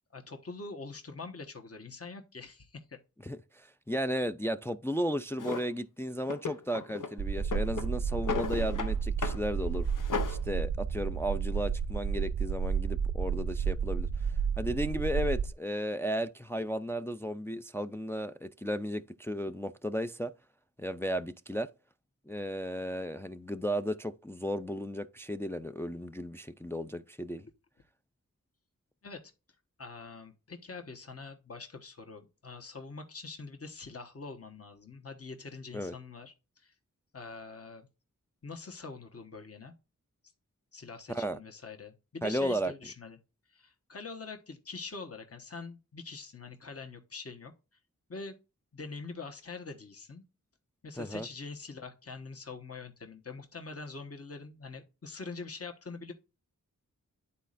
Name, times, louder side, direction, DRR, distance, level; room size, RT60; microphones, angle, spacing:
voice 1, 0.1-3.0 29.0-29.2 29.8-36.7 37.1-37.9 38.4-39.7 40.7-43.2 43.5-47.5 48.1-48.3 48.7-50.2 50.8-56.1, left 4 dB, 45° left, 1.2 m, -44 dB
voice 2, 3.2-9.9 10.3-20.3 20.8-21.7 22.3-27.5 35.7-35.9 41.1-41.4 42.2-42.7 51.0-51.3, equal, 5° left, 0.4 m, -34 dB
Drawer open or close, 5.4-5.7 6.3-7.1 7.4-8.9 9.2-9.4 9.7-10.4, left 5 dB, 70° left, 0.8 m, -35 dB
sound 1, 7.2-15.5, right 6 dB, 55° right, 0.6 m, -31 dB
11.5 x 4.2 x 2.5 m
wide cardioid pair, 55°, 33 cm